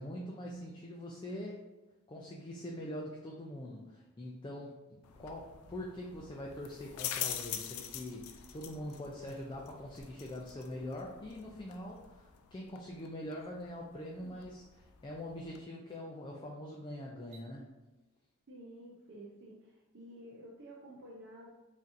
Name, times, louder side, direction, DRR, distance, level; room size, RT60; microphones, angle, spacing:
voice 1, 0.0-1.6 2.1-4.7 5.2-17.7, left 1 dB, 20° left, -2 dB, 0.4 m, -43 dB
sound 1, 5.0-15.6, left 9 dB, 85° left, 0.4 m, -45 dB
sound 2, 13.3-13.5 15.1-15.2 15.7-16.0 17.1-17.5, right 5 dB, 90° right, 1.1 m, -65 dB
voice 2, 18.5-21.5, right 1 dB, 55° right, -3 dB, 0.5 m, -51 dB
5.2 x 2.7 x 2.5 m, 1.1 s
head